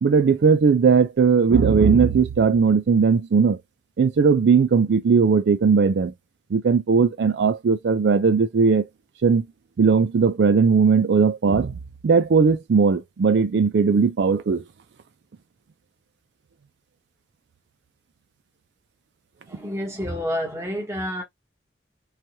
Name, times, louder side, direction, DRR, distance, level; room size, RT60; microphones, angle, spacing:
voice 1, 0.0-3.6 4.0-6.1 6.5-8.8 9.2-9.5 9.8-11.8 12.0-14.6, right 5 dB, 80° right, 0.4 m, -18 dB
voice 2, 19.5-21.2, equal, 15° right, 1.0 m, -29 dB
3.2 x 2.2 x 2.7 m
head